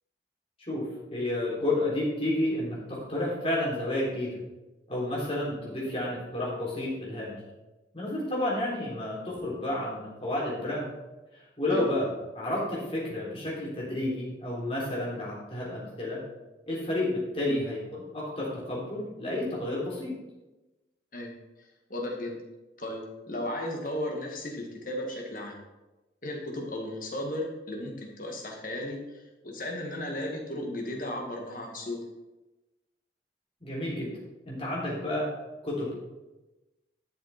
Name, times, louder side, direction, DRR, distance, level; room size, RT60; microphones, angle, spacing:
voice 1, 1.1-4.4 4.9-7.4 7.9-10.9 11.6-12.1 12.3-16.2 16.7-20.1 33.6-34.1 34.5-35.3 35.6-35.9, left 1 dB, 35° left, -5 dB, 3.7 m, -31 dB
voice 2, 21.9-22.4 22.8-25.6 26.2-32.0, left 1 dB, 50° left, 1 dB, 1.9 m, -35 dB
11.5 x 6.7 x 4.3 m, 1.1 s
head